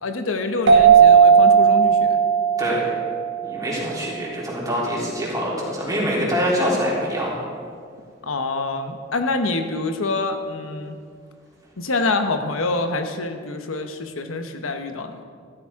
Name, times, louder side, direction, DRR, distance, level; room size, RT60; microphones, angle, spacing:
voice 1, 0.0-2.2 8.2-11.0 11.8-15.2, left 3 dB, 85° left, 6 dB, 0.9 m, -26 dB
sound 1, 0.7-4.0, right 7 dB, 65° right, 1.6 m, -15 dB
voice 2, 3.4-7.4, equal, 20° right, -6 dB, 3.5 m, -24 dB
14.0 x 13.5 x 3.6 m, 2.1 s
head